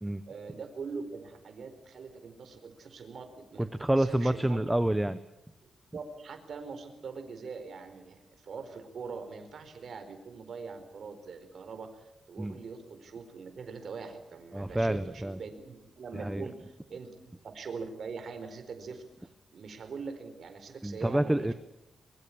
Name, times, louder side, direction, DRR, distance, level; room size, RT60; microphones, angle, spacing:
voice 1, 0.3-3.7 4.0-4.6 5.6-17.1 17.4-21.5, right 5 dB, 55° right, 8 dB, 4.4 m, -43 dB
voice 2, 3.6-5.2 12.4-12.5 14.5-15.4 16.1-16.5 20.8-21.5, right 1 dB, 10° right, 12 dB, 0.9 m, -28 dB
23.0 x 23.0 x 8.7 m, 0.87 s
wide cardioid pair, 145°, 0 cm